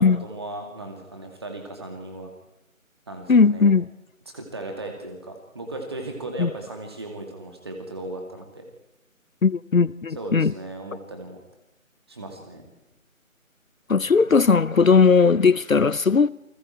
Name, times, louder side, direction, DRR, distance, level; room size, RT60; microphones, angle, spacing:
voice 1, 0.0-2.3 3.1-3.7 4.3-8.7 10.2-11.4 12.1-12.6, right 2 dB, 20° right, 2.3 m, -36 dB
voice 2, 3.3-3.9 6.4-6.5 9.4-10.5 13.9-16.3, left 5 dB, 70° left, 0.8 m, -18 dB
28.5 x 20.0 x 4.5 m
figure-of-eight pair, 165°, 42 cm